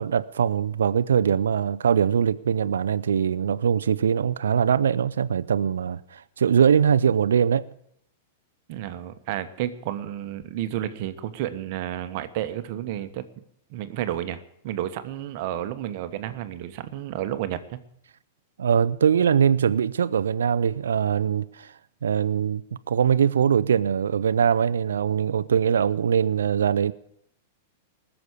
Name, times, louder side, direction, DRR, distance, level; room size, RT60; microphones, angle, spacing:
voice 1, 0.0-7.7 18.6-21.7 22.0-22.6 22.9-26.9, right 8 dB, 80° right, 0.5 m, -22 dB
voice 2, 8.7-13.2 13.7-17.8, right 12 dB, 55° right, 1.2 m, -31 dB
19.5 x 7.1 x 8.2 m
hypercardioid pair, 110°, 0 cm